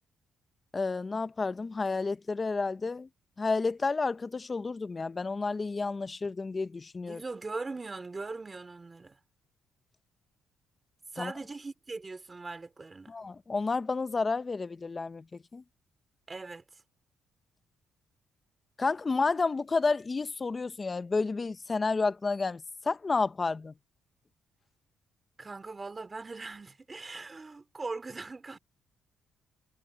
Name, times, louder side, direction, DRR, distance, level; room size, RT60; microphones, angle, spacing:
voice 1, 0.7-3.1 3.4-7.2 11.2-11.3 13.1-15.6 18.8-23.7, left 4 dB, 30° left, 0.9 m, -31 dB
voice 2, 7.1-9.2 11.1-13.2 16.3-16.8 25.4-28.6, right 3 dB, 25° right, 3.5 m, -40 dB
cardioid pair, 95°, 0 cm